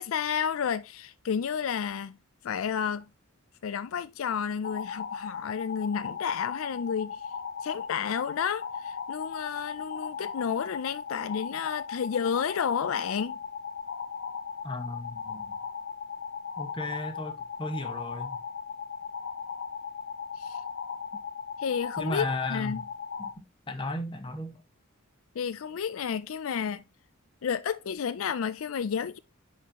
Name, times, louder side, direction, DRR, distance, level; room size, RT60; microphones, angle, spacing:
voice 1, 0.0-2.1 2.4-3.1 3.6-7.2 7.6-13.4 20.4-20.6 21.6-22.8 25.4-26.8 27.4-29.2, left 7 dB, 75° left, 0.4 m, -31 dB
sound 1, 4.6-23.3, left 6 dB, 50° left, 0.8 m, -37 dB
voice 2, 14.6-15.6 16.6-18.4 22.0-22.8 23.2-23.3 23.7-24.6, left 2 dB, 25° left, 1.3 m, -35 dB
10.0 x 4.3 x 2.9 m
head